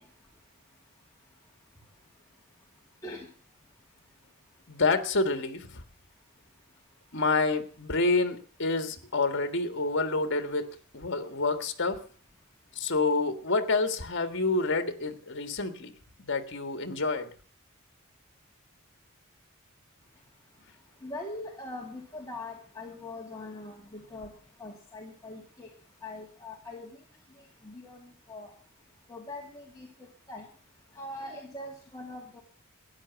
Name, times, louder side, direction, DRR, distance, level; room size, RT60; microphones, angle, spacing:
voice 1, 4.7-5.8 7.1-12.0 12.7-15.9 16.2-17.3, left 3 dB, 55° left, 9 dB, 1.7 m, -28 dB
voice 2, 21.0-24.3 24.6-25.7 26.0-26.9 27.4-28.5 29.1-29.9 30.3-30.4 31.0-32.4, left 2 dB, 15° left, -2 dB, 2.2 m, -42 dB
13.5 x 10.0 x 7.1 m, 0.43 s
head